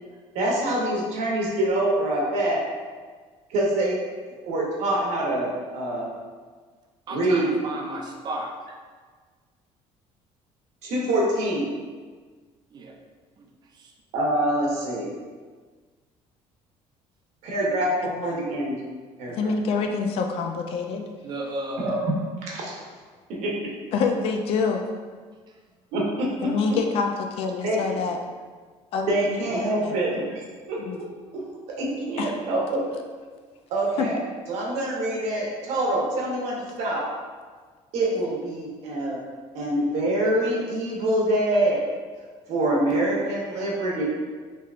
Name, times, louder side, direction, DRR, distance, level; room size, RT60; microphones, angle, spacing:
voice 1, 0.3-2.6 3.5-4.0 4.5-6.1 7.1-7.6 10.8-11.7 14.1-15.1 17.4-18.8 19.2-19.5 21.8-22.8 23.3-23.7 25.9-26.8 27.6-27.8 29.1-30.4 30.7-31.1 31.3-31.4 31.8-32.8 33.7-34.2 34.5-37.1 37.9-39.2 39.5-41.8 42.5-44.0, right 1 dB, 75° right, -3 dB, 0.9 m, -25 dB
voice 2, 7.1-8.5 12.7-12.9 21.2-21.9, right 2 dB, 35° right, 1 dB, 0.4 m, -33 dB
voice 3, 19.3-21.1 23.9-24.9 26.4-28.2 28.9-29.4 29.8-30.0 30.8-31.0 32.2-32.3 34.0-34.1, left 4 dB, 55° left, 4 dB, 0.4 m, -26 dB
3.5 x 2.8 x 2.4 m, 1.5 s
cardioid pair, 145°, 12 cm